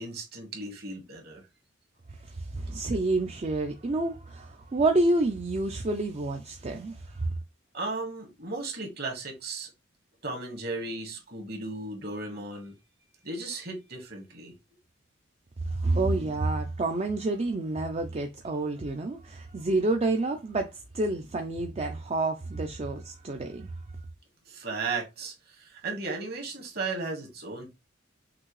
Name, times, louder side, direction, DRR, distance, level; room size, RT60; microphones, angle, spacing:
voice 1, 0.0-1.4 7.7-9.7 10.2-12.7 13.2-14.5 24.5-27.7, right 3 dB, 55° right, 1.6 m, -35 dB
voice 2, 2.2-7.0 15.7-23.7, right 2 dB, 30° right, 0.4 m, -28 dB
6.0 x 2.7 x 3.1 m
head